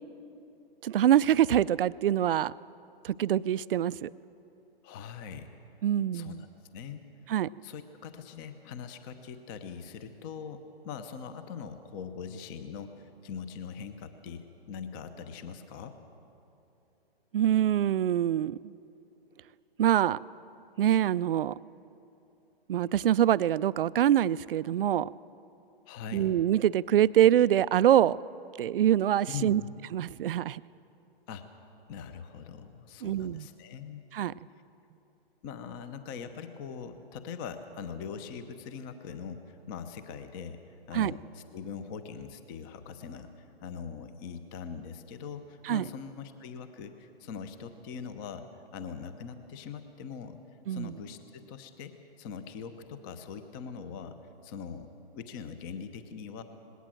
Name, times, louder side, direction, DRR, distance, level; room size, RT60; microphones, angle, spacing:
voice 1, 0.8-2.5 3.0-4.1 5.8-6.4 7.3-7.5 17.3-18.6 19.8-20.2 20.8-21.6 22.7-25.1 26.1-28.2 28.6-29.6 29.9-30.6 33.0-33.5 34.1-34.3 40.9-41.1 45.6-45.9 50.7-50.9, right 11 dB, 65° right, 19 dB, 0.5 m, -25 dB
voice 2, 4.8-5.5 6.1-6.4 6.7-7.0 7.6-16.0 25.9-26.3 29.3-29.7 31.3-31.5 31.9-34.1 35.4-40.6 40.9-50.4 50.7-54.2 54.4-54.9 55.1-56.4, left 6 dB, 20° left, 10 dB, 0.8 m, -42 dB
20.0 x 17.5 x 7.7 m, 2.8 s
hypercardioid pair, 155°, 30 cm